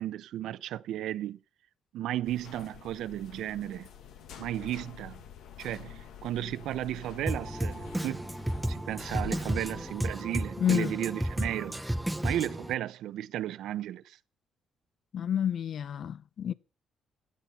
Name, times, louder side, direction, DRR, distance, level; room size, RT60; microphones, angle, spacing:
voice 1, 0.0-1.4 1.9-3.9 4.4-5.2 5.6-8.3 8.7-11.8 12.2-14.2, right 12 dB, 85° right, 0.7 m, -34 dB
sound 1, 2.2-10.1, left 9 dB, 80° left, 1.5 m, -48 dB
Drum kit, 7.3-12.7, right 1 dB, 5° right, 0.8 m, -33 dB
voice 2, 10.6-10.9 15.1-16.5, left 9 dB, 60° left, 0.7 m, -29 dB
16.0 x 11.0 x 5.7 m
cardioid pair, 90°, 0 cm